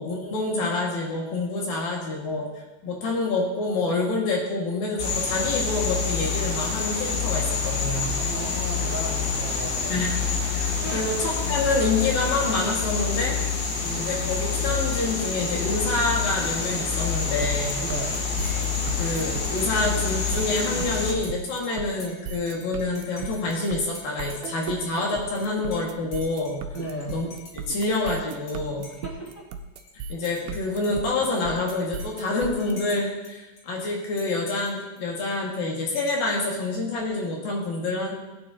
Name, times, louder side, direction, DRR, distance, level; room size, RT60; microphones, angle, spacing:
voice 1, 0.0-2.5 2.8-8.2 9.9-10.2 10.5-13.4 13.9-17.9 19.0-26.6 27.1-27.3 27.5-28.9 30.1-38.1, left 2 dB, 70° left, -2 dB, 3.7 m, -27 dB
sound 1, 5.0-21.1, left 5 dB, 90° left, 3.8 m, -27 dB
voice 2, 8.2-10.0 10.8-11.1 13.8-14.1 17.8-18.2 26.7-27.2 29.0-29.5, right 1 dB, 5° left, -5 dB, 1.8 m, -35 dB
sound 2, 17.4-32.7, right 5 dB, 80° right, 2.5 m, -36 dB
Dishes pots and pans / Cutlery silverware / Chink clink, 18.3-28.6 28.8-29.9 30.2-33.3 33.6-35.6 36.0-36.3, left 3 dB, 45° left, 3.3 m, -48 dB
19.5 x 9.1 x 2.9 m, 1.1 s
omnidirectional pair, 4.3 m